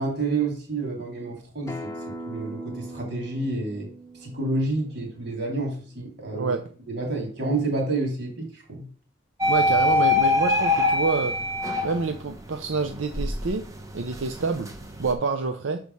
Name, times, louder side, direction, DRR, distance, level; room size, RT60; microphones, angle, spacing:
voice 1, 0.0-3.9 4.1-6.5 6.9-8.9, right 2 dB, 60° right, 0 dB, 3.0 m, -29 dB
Acoustic guitar, 1.7-6.9, right 1 dB, 15° left, 0.9 m, -41 dB
sound 1, 9.4-12.3 12.8-15.1, left 2 dB, 15° right, 0.9 m, -24 dB
voice 2, 9.5-11.4 11.8-13.6 13.9-14.7 15.0-15.8, right 4 dB, 85° right, 6 dB, 0.6 m, -27 dB
6.4 x 4.7 x 5.4 m, 0.43 s
head